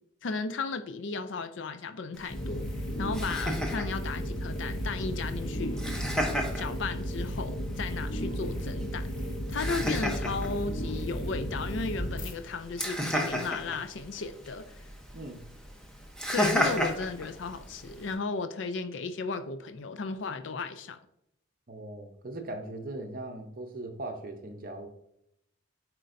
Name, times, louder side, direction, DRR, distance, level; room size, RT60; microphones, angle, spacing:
voice 1, 0.2-2.7 3.0-5.8 6.5-9.1 9.5-14.9 16.3-21.0, left 4 dB, 65° left, 10 dB, 0.4 m, -35 dB
Laughter, 2.1-18.1, equal, 5° left, 0.8 m, -35 dB
sound 1, 2.3-12.3, equal, 40° left, 1.2 m, -34 dB
voice 2, 15.1-15.5 21.7-24.9, right 2 dB, 45° right, 4 dB, 0.7 m, -39 dB
9.0 x 4.4 x 2.6 m, 0.78 s
head